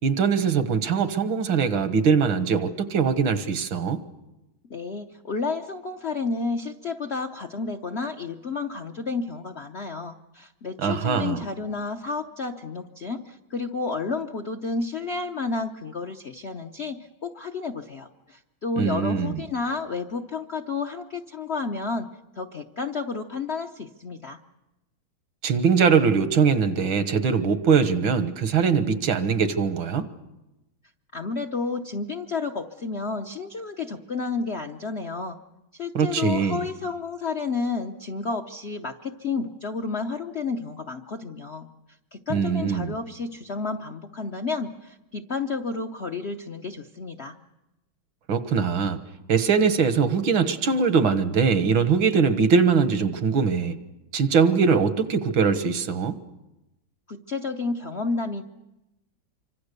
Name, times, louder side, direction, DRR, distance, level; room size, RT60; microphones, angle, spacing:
voice 1, 0.0-4.0 10.8-11.4 18.8-19.4 25.4-30.1 35.9-36.6 42.3-43.0 48.3-49.0 49.3-53.8 54.1-56.2, right 5 dB, 75° right, 10 dB, 2.1 m, -22 dB
voice 2, 4.7-17.0 17.2-22.1 22.4-24.4 31.1-35.4 35.7-41.7 42.1-47.4 57.1-58.4, left 4 dB, 45° left, 4 dB, 0.9 m, -31 dB
26.5 x 25.0 x 6.8 m, 0.97 s
omnidirectional pair, 2.2 m